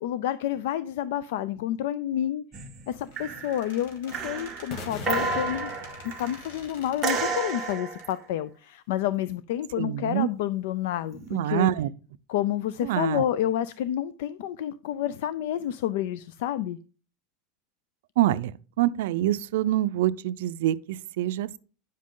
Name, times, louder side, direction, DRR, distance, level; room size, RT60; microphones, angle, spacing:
voice 1, 0.0-2.4 2.9-5.7 6.2-11.7 12.3-16.8, left 11 dB, 65° left, 0.5 m, -29 dB
sound 1, 2.5-2.9 3.2-3.7 4.1-6.5 7.0-8.1 11.1-11.4, right 4 dB, 15° right, 1.4 m, -31 dB
Squeak, 3.0-8.1, left 3 dB, 85° left, 3.3 m, -50 dB
sound 2, 4.7-6.8, left 2 dB, 35° left, 1.3 m, -40 dB
voice 2, 9.8-10.3 11.3-11.9 12.8-13.2 18.2-18.5 18.8-21.6, right 13 dB, 75° right, 0.5 m, -25 dB
10.0 x 7.4 x 3.8 m
supercardioid pair, 175°, 0 cm